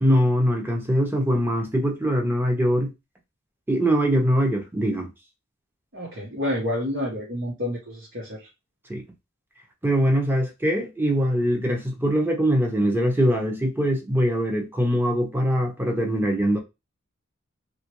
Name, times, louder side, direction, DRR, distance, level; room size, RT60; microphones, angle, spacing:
voice 1, 0.0-2.9 3.7-5.1 8.9-9.0 9.8-16.6, equal, 10° right, 0.7 m, -22 dB
voice 2, 5.9-8.5, left 1 dB, 65° right, 1.1 m, -29 dB
3.0 x 2.5 x 2.9 m
head